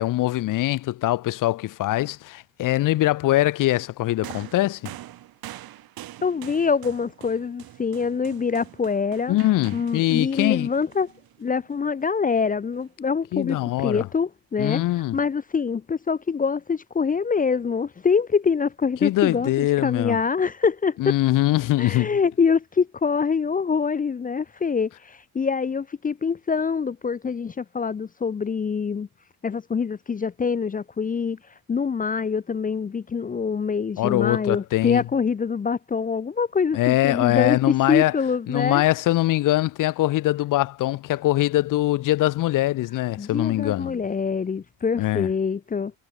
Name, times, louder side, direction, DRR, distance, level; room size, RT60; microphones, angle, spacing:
voice 1, 0.0-4.9 9.3-10.7 13.3-14.1 14.6-15.2 19.0-20.2 21.0-22.1 34.0-35.0 36.7-38.1 38.5-44.0 45.0-45.3, left 16 dB, 45° left, 0.7 m, -22 dB
sound 1, 4.2-11.7 12.7-12.9, right 14 dB, 55° right, 3.1 m, -44 dB
voice 2, 6.2-9.4 9.7-11.1 11.4-14.8 15.1-21.0 21.8-29.1 29.4-31.4 31.7-38.8 43.2-45.9, left 5 dB, 20° left, 0.8 m, -25 dB
cardioid pair, 155°, 44 cm